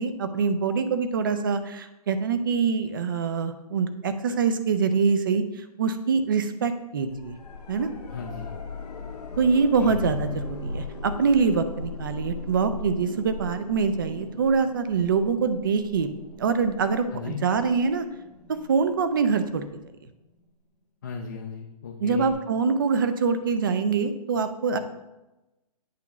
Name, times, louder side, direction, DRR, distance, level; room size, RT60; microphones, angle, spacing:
voice 1, 0.0-7.3 7.7-7.9 9.4-18.1 18.5-19.6 22.0-24.8, right 5 dB, 35° right, 10 dB, 0.5 m, -24 dB
sound 1, 7.1-20.0 22.3-22.4, left 3 dB, 85° left, 1.4 m, -38 dB
voice 2, 8.1-8.5 9.8-10.0 17.1-17.4 21.0-22.3, left 6 dB, 30° left, 2 dB, 0.4 m, -36 dB
8.4 x 3.0 x 5.8 m, 0.99 s
hypercardioid pair, 170°, 20 cm